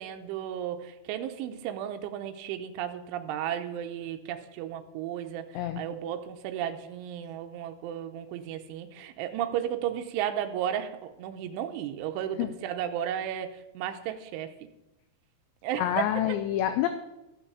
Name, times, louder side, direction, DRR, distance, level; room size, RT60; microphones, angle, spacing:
voice 1, 0.0-14.7 15.6-16.4, right 10 dB, 85° right, 7 dB, 3.2 m, -34 dB
voice 2, 15.8-16.9, left 12 dB, 80° left, 9 dB, 2.8 m, -27 dB
15.0 x 5.8 x 6.9 m, 0.97 s
omnidirectional pair, 5.5 m